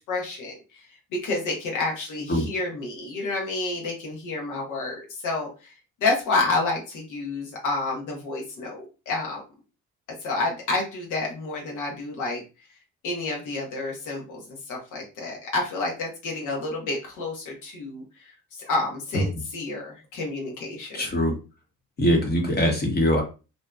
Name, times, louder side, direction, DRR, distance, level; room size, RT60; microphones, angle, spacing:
voice 1, 0.1-0.6 1.1-5.5 6.0-9.4 10.2-12.4 13.0-14.4 14.7-18.0 18.5-21.0, left 3 dB, 90° left, -2 dB, 0.9 m, -29 dB
voice 2, 20.9-21.4 22.0-23.2, equal, 35° left, 0 dB, 0.8 m, -22 dB
2.7 x 2.1 x 2.2 m, 0.32 s
cardioid pair, 90°, 30 cm